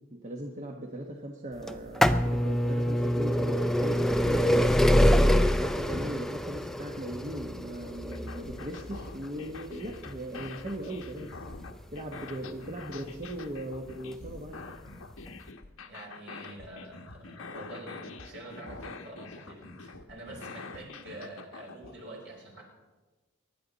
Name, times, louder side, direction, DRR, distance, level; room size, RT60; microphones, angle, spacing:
voice 1, 0.1-4.7 5.6-11.4 11.9-14.7, right 1 dB, 35° right, 1 dB, 1.1 m, -38 dB
sound 1, 1.7-13.3 14.1-14.2 15.2-15.3 15.5-15.6, equal, ahead, 0.4 m, -26 dB
sound 2, 7.8-22.0, left 3 dB, 75° left, 1.1 m, -45 dB
voice 2, 15.9-22.6, right 1 dB, 55° right, -2 dB, 5.3 m, -46 dB
24.5 x 11.0 x 4.0 m, 1.2 s
head